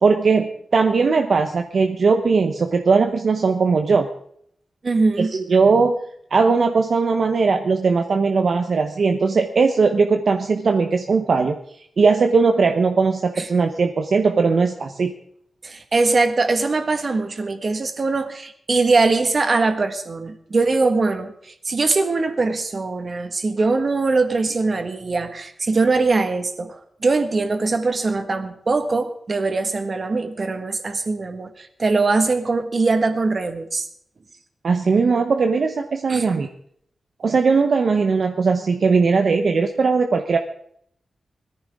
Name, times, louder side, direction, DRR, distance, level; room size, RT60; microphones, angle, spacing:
voice 1, 0.0-4.1 5.2-6.0 6.3-11.6 12.0-15.1 34.6-36.5 37.2-40.4, right 4 dB, 55° right, 5 dB, 1.0 m, -19 dB
voice 2, 4.8-5.3 13.4-13.5 15.6-33.9 36.1-36.2, right 3 dB, 40° right, 7 dB, 1.7 m, -21 dB
21.0 x 14.5 x 3.7 m, 0.67 s
wide cardioid pair, 155°, 0 cm